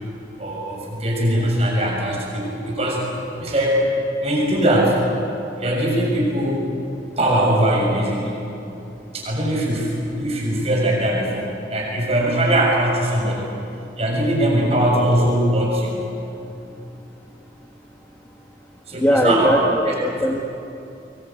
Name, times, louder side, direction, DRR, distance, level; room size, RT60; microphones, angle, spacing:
voice 1, 0.4-3.0 3.4-3.8 4.2-5.0 5.6-6.7 7.2-8.5 9.1-13.5 14.0-16.0 18.9-19.5 19.8-19.9, right 1 dB, 35° right, -2 dB, 7.0 m, -21 dB
voice 2, 19.0-20.5, equal, 10° left, 0 dB, 1.5 m, -19 dB
24.5 x 23.0 x 9.2 m, 2.8 s
head